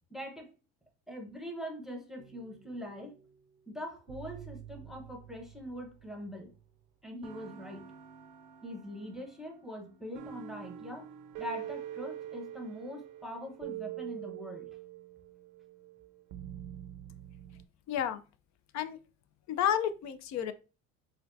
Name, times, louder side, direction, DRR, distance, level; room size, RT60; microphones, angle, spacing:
voice 1, 0.1-0.5 1.1-3.1 3.7-6.5 7.0-7.8 8.6-11.1 11.4-14.7, equal, ahead, 2 dB, 0.9 m, -42 dB
sound 1, 2.2-3.4 4.1-6.7 7.2-17.7, right 11 dB, 60° right, 0.6 m, -46 dB
voice 2, 17.9-18.2 18.7-19.0 19.5-20.5, left 9 dB, 50° left, 12 dB, 0.5 m, -31 dB
4.3 x 2.3 x 2.6 m, 0.33 s
supercardioid pair, 95°, 37 cm